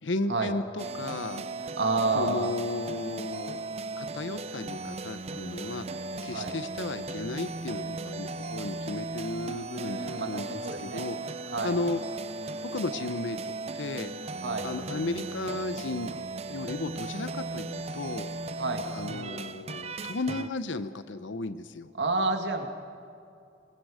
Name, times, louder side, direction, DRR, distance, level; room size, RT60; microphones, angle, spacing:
voice 1, 0.0-1.5 2.1-3.7 4.0-5.9 6.2-11.2 11.6-12.0 12.6-14.1 14.6-16.1 16.5-18.3 18.9-21.9, left 2 dB, 85° left, 12 dB, 0.8 m, -34 dB
sound 1, 0.8-20.5, right 3 dB, 35° right, 0.6 m, -37 dB
voice 2, 1.8-2.5 6.3-6.5 9.7-11.0 11.5-11.7 14.4-14.7 18.6-18.8 22.0-22.7, right 3 dB, 70° right, 4 dB, 2.0 m, -29 dB
26.0 x 21.5 x 5.0 m, 2.6 s
head